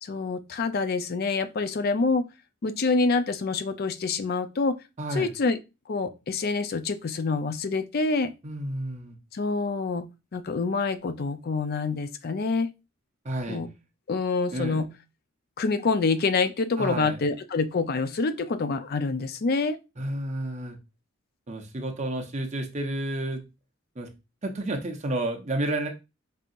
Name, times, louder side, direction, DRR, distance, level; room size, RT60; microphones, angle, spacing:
voice 1, 0.0-2.3 2.6-4.8 5.1-5.6 5.9-8.3 9.3-10.1 10.3-12.7 13.5-13.7 14.1-14.9 15.6-19.8, left 4 dB, 50° left, 0.4 m, -26 dB
voice 2, 5.0-5.3 8.4-9.2 13.2-13.6 14.5-14.9 16.8-17.2 20.0-20.8 21.5-23.4 24.0-24.1 24.4-25.9, right 1 dB, 35° right, 0.8 m, -31 dB
5.3 x 2.8 x 2.5 m
head